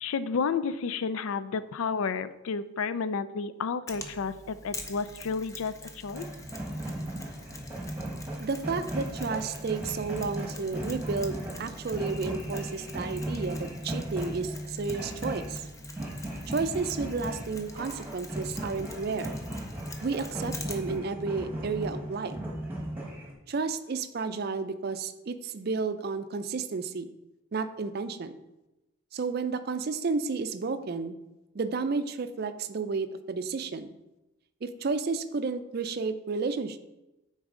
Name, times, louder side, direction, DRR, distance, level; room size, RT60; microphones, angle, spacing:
voice 1, 0.0-6.3, left 5 dB, 80° left, 13 dB, 0.4 m, -31 dB
Mechanisms, 3.9-21.0, left 2 dB, 15° left, 0.5 m, -45 dB
sound 1, 6.1-23.3, right 1 dB, 10° right, 1.1 m, -37 dB
voice 2, 8.4-15.6 16.5-19.3 20.0-22.4 23.5-27.1 27.5-28.4 29.1-31.2 31.5-33.9 34.6-36.8, right 4 dB, 45° right, 11 dB, 0.4 m, -32 dB
9.5 x 4.0 x 3.7 m, 0.98 s
head